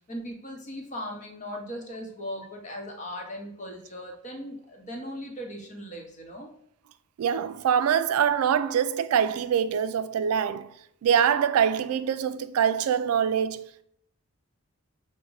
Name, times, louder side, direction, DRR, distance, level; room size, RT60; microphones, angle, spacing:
voice 1, 0.1-6.5, equal, 35° left, 0.8 m, -38 dB
voice 2, 7.2-10.7 11.0-13.8, right 8 dB, 80° right, 0.3 m, -24 dB
5.9 x 2.1 x 3.8 m
head